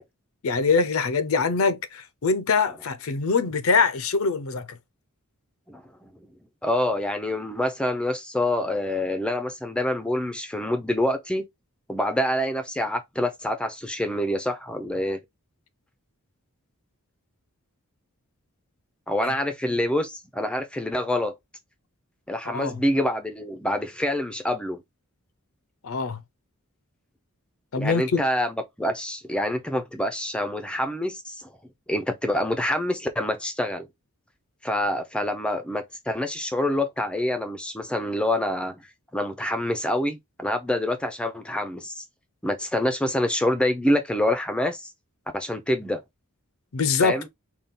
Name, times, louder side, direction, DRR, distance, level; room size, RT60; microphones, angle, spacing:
voice 1, 0.4-4.8 19.2-19.3 19.7-19.8 22.5-22.8 25.8-26.2 27.7-28.2 46.7-47.3, left 4 dB, 65° left, 0.6 m, -24 dB
voice 2, 5.7-6.1 6.6-11.5 11.9-15.2 19.1-21.3 22.3-24.8 27.8-31.5 31.9-33.9 34.6-38.8 39.1-42.0 42.4-44.9 45.3-46.0 47.0-47.3, left 1 dB, 5° left, 0.5 m, -26 dB
4.1 x 2.3 x 3.7 m
head